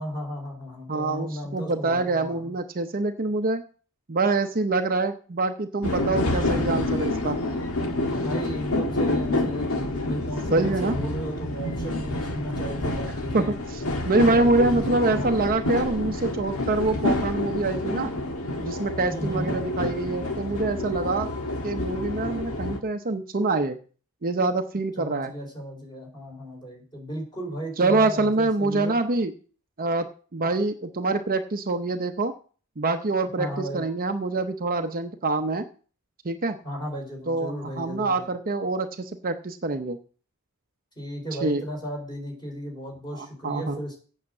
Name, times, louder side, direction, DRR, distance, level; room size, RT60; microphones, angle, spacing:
voice 1, 0.0-2.5 8.0-13.5 14.1-15.3 19.1-19.5 25.0-29.0 33.4-33.8 36.6-38.3 41.0-44.0, equal, 20° left, 0 dB, 4.2 m, -35 dB
voice 2, 0.9-3.6 4.1-7.4 10.5-11.0 13.3-18.1 18.6-21.3 21.6-23.8 24.2-25.3 27.8-29.3 29.8-30.1 30.3-32.3 32.8-35.6 36.2-36.6 37.3-40.0 41.4-41.6 43.2-43.8, right 3 dB, 40° right, 6 dB, 0.7 m, -25 dB
sound 1, 5.8-22.8, left 2 dB, 70° left, 1.5 m, -28 dB
8.6 x 6.5 x 7.6 m, 0.40 s
head